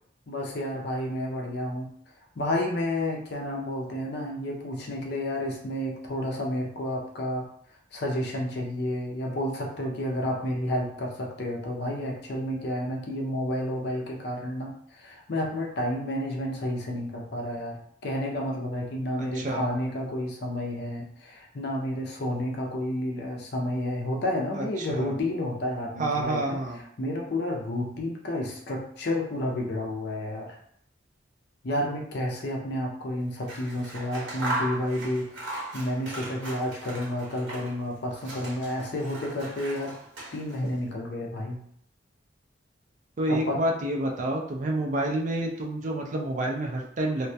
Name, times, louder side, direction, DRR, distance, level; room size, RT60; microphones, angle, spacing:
voice 1, 0.3-1.9 2.4-7.5 7.9-26.6 27.0-30.5 31.6-39.9 40.3-41.6 43.3-43.6, left 1 dB, 60° left, 0 dB, 0.5 m, -31 dB
voice 2, 24.5-25.1 26.0-26.8 43.2-47.3, right 1 dB, 45° right, 1 dB, 0.4 m, -28 dB
Scissors, 33.3-37.8 38.1-40.7, right 1 dB, 80° right, 0.9 m, -37 dB
2.2 x 2.1 x 2.6 m, 0.69 s
head